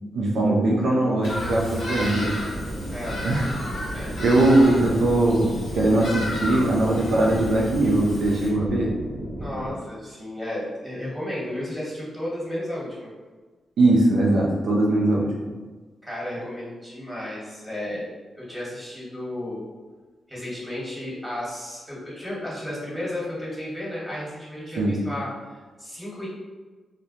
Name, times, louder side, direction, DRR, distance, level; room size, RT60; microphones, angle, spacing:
voice 1, 0.1-2.3 3.2-3.5 4.2-8.9 13.8-15.4 24.8-24.9, right 2 dB, 75° right, -3 dB, 0.4 m, -20 dB
Bird vocalization bird call bird song, 1.2-8.5, left 1 dB, 80° left, 0.8 m, -33 dB
sound 1, 2.1-9.7, right 1 dB, 35° right, 0.9 m, -34 dB
voice 2, 2.9-3.2 3.9-4.2 9.3-13.1 16.0-18.1 18.3-19.6 20.3-26.3, left 1 dB, ahead, -7 dB, 1.3 m, -33 dB
2.1 x 2.1 x 2.7 m, 1.3 s
supercardioid pair, 45°, 0 cm